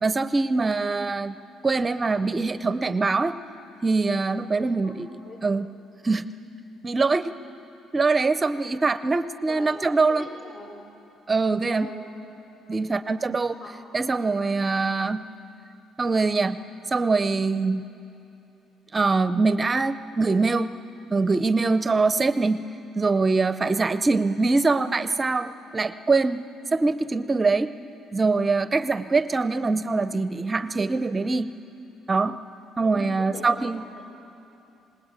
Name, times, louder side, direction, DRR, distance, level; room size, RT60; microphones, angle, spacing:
voice 1, 0.0-1.3 1.6-3.4 3.8-5.1 5.4-5.7 6.0-6.3 6.8-7.3 7.9-10.2 11.3-11.9 12.7-13.6 13.9-15.2 16.0-16.6 16.9-17.8 18.9-20.7 21.1-22.6 22.9-26.5 26.7-27.7 28.1-31.5 32.1-32.4 32.8-33.8, right 3 dB, 25° right, 12 dB, 0.5 m, -23 dB
voice 2, 4.6-5.4 9.5-9.7 10.1-10.7 11.7-12.1 12.3-13.0 13.6-13.9 32.8-33.7, left 2 dB, 55° left, 0 dB, 7.1 m, -42 dB
26.5 x 20.0 x 8.9 m, 2.8 s
cardioid pair, 115°, 0 cm